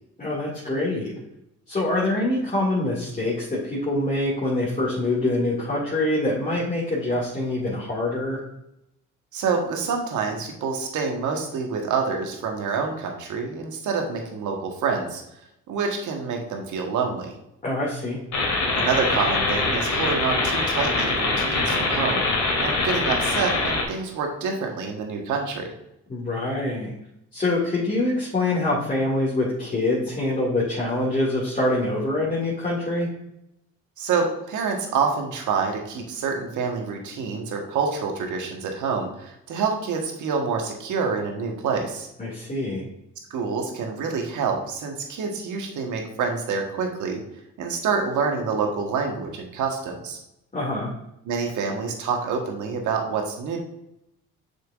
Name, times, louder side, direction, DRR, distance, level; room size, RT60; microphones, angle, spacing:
voice 1, 0.2-1.1 1.7-8.4 17.6-18.2 26.1-26.9 27.3-33.1 42.2-42.8 50.5-50.9, left 2 dB, 25° left, -6 dB, 2.3 m, -25 dB
voice 2, 9.3-15.2 15.7-17.3 18.8-22.2 22.6-25.7 34.0-42.1 43.3-47.2 47.6-50.2 51.2-53.6, right 5 dB, 70° right, 2 dB, 1.5 m, -27 dB
sound 1, 18.3-23.8, left 3 dB, 60° left, 2.2 m, -23 dB
6.7 x 5.9 x 2.5 m, 0.83 s
supercardioid pair, 65°, 32 cm